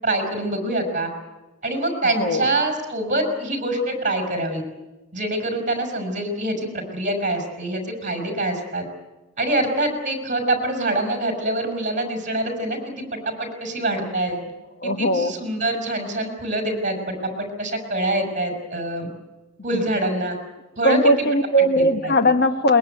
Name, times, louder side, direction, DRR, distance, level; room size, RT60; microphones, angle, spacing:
voice 1, 0.0-1.1 1.6-4.6 5.1-8.8 9.4-14.5 14.8-19.1 19.6-20.4 20.8-21.0 21.8-22.1, right 1 dB, 40° right, 4 dB, 5.9 m, -25 dB
voice 2, 2.0-2.5 14.8-15.3 19.7-19.9 20.8-22.8, equal, 50° left, 8 dB, 1.5 m, -19 dB
22.0 x 21.5 x 9.3 m, 1.1 s
head